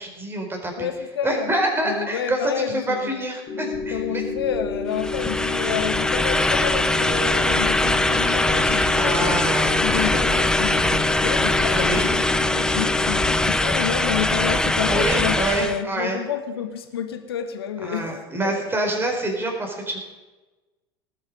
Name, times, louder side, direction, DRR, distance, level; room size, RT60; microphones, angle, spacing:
voice 1, 0.0-0.9 1.2-4.2 8.6-10.1 11.7-12.1 14.9-16.2 17.8-20.0, right 1 dB, 15° right, 4.5 m, -26 dB
voice 2, 0.8-1.5 1.8-3.2 3.9-9.4 9.8-18.5, left 8 dB, 75° left, 1.5 m, -29 dB
sound 1, 3.5-13.5, left 4 dB, 35° left, 3.0 m, -30 dB
sound 2, 3.7-11.4, right 8 dB, 55° right, 1.4 m, -40 dB
sound 3, 4.9-15.8, left 1 dB, 5° left, 0.8 m, -22 dB
19.0 x 8.8 x 5.5 m
figure-of-eight pair, 80°, 13 cm